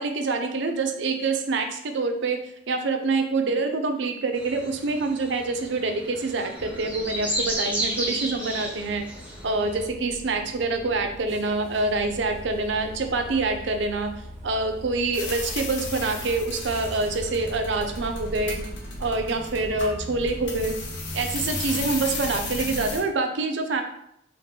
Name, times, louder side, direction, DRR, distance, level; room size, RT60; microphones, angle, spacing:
voice 1, 0.0-2.4 2.7-9.0 9.4-14.1 14.4-18.6 19.0-20.7 21.1-23.8, right 3 dB, 60° right, 6 dB, 0.5 m, -26 dB
sound 1, 4.3-9.8, right 1 dB, 5° right, 0.7 m, -32 dB
sound 2, 6.5-18.7, left 1 dB, 15° left, 1.3 m, -42 dB
sound 3, 15.1-23.0, left 2 dB, 60° left, 0.8 m, -33 dB
4.0 x 2.9 x 3.4 m, 0.74 s
head